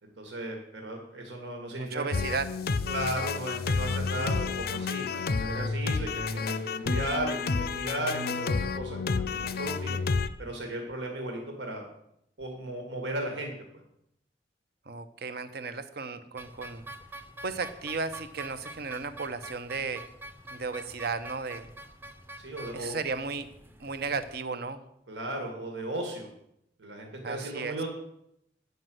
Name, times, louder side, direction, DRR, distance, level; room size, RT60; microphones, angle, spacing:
voice 1, 0.0-2.0 2.9-10.0 10.4-11.9 12.4-13.5 22.4-23.0 25.1-26.3 26.8-27.9, right 1 dB, 85° right, 2 dB, 1.9 m, -35 dB
voice 2, 1.8-2.5 14.9-16.9 17.4-20.0 20.5-21.7 22.7-23.5 23.8-24.8 27.2-27.8, right 4 dB, 60° right, 11 dB, 0.8 m, -34 dB
sound 1, 2.1-10.3, left 4 dB, 60° left, 0.5 m, -30 dB
sound 2, 16.4-24.3, right 1 dB, 15° right, 0.6 m, -46 dB
9.3 x 5.4 x 7.7 m, 0.77 s
head